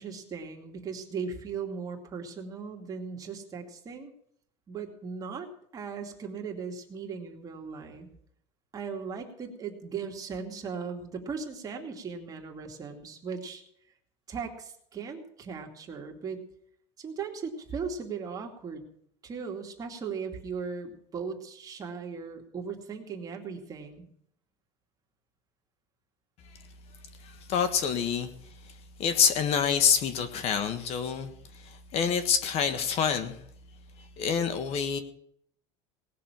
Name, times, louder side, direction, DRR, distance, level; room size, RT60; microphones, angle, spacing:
voice 1, 0.0-4.1 4.7-8.1 8.7-13.6 14.3-16.4 17.0-18.8 19.2-24.1, right 5 dB, 25° right, 3 dB, 2.5 m, -38 dB
voice 2, 27.2-28.3 28.6-28.7 29.0-33.4 34.2-35.0, left 7 dB, 45° left, 10 dB, 1.5 m, -27 dB
18.5 x 6.7 x 9.2 m, 0.68 s
supercardioid pair, 145°, 15 cm